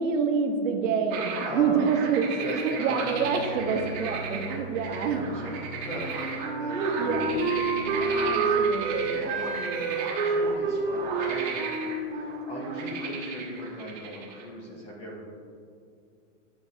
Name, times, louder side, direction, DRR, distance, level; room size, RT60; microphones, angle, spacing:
voice 1, 0.0-2.3 2.5-5.3 6.7-7.5 7.9-10.1, right 6 dB, 85° right, 4 dB, 1.0 m, -28 dB
sound 1, 1.1-14.4, right 5 dB, 35° right, 1.0 m, -36 dB
voice 2, 1.4-1.9 2.4-3.8 4.9-6.7 7.0-7.1 7.8-8.3 9.0-9.4 10.2-11.7 12.2-15.2, equal, 15° left, -2 dB, 0.8 m, -38 dB
sound 2, 3.0-11.4, equal, 65° left, 1.3 m, -42 dB
Wind instrument woodwind instrument, 5.9-13.5, right 4 dB, 55° right, 1.1 m, -29 dB
9.7 x 5.2 x 2.7 m, 2.3 s
supercardioid pair, 170°, 38 cm